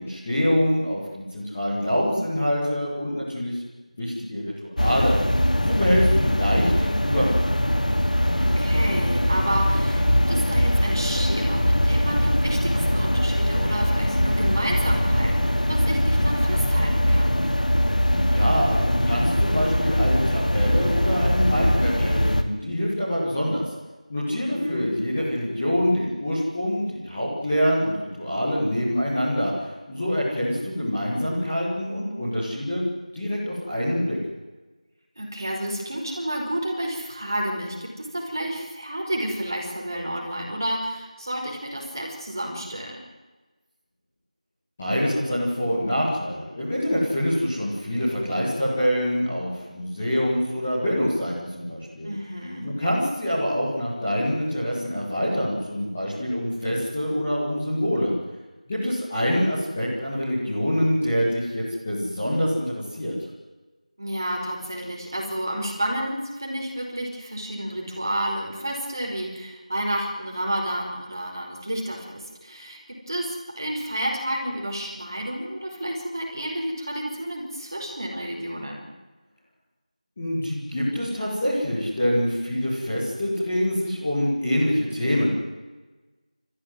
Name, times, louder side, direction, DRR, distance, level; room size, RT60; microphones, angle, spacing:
voice 1, 0.0-3.6 4.0-7.3 18.3-23.6 24.1-29.5 29.9-32.8 33.1-34.2 44.8-52.1 52.6-58.1 58.7-63.1 80.2-85.3, equal, 10° left, -10 dB, 2.0 m, -25 dB
sound 1, 4.8-22.4, left 1 dB, 90° left, 2.5 m, -21 dB
voice 2, 8.3-17.4 24.3-24.9 35.2-43.1 52.0-52.7 64.0-78.8, right 1 dB, 30° right, -1 dB, 5.1 m, -30 dB
26.0 x 15.0 x 9.5 m, 1.2 s
figure-of-eight pair, 180°, 4 cm